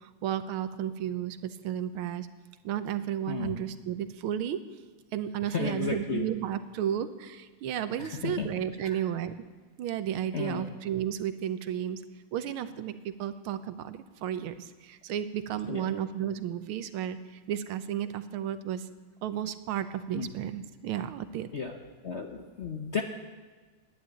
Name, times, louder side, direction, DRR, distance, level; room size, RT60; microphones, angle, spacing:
voice 1, 0.0-2.3 2.6-4.6 5.1-9.3 9.8-12.0 12.3-17.2 17.5-18.9 19.2-21.7, right 10 dB, 90° right, 11 dB, 1.6 m, -33 dB
voice 2, 5.5-6.2 8.0-8.5 8.8-9.0 10.3-10.7 15.7-15.9 20.2-20.3 21.5-21.8 22.0-23.0, left 6 dB, 55° left, 3 dB, 0.7 m, -33 dB
11.5 x 10.5 x 9.2 m, 1.4 s
omnidirectional pair, 2.3 m